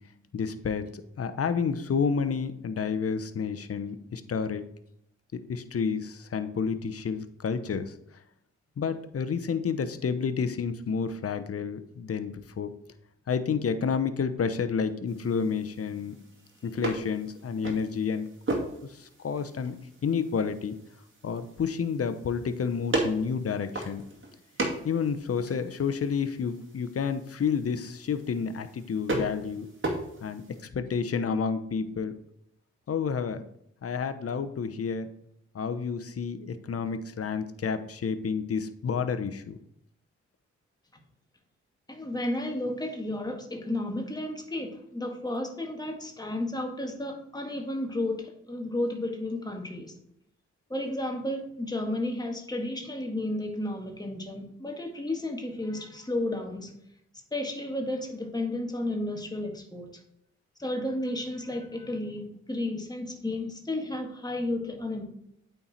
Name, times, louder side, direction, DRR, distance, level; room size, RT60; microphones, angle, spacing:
voice 1, 0.3-4.7 5.3-7.9 8.8-12.7 13.3-16.2 16.6-18.3 19.0-19.8 20.0-20.7 21.2-24.0 24.8-29.7 30.2-30.4 30.7-32.1 32.9-33.4 33.8-35.1 35.5-39.6, left 6 dB, 50° left, 10 dB, 0.9 m, -30 dB
sound 1, 15.1-30.6, right 2 dB, 40° right, 2.4 m, -37 dB
voice 2, 41.9-49.9 50.7-56.7 57.3-60.0 60.6-65.0, left 1 dB, 15° left, 2 dB, 1.7 m, -32 dB
8.5 x 4.6 x 4.2 m, 0.74 s
supercardioid pair, 40°, 30 cm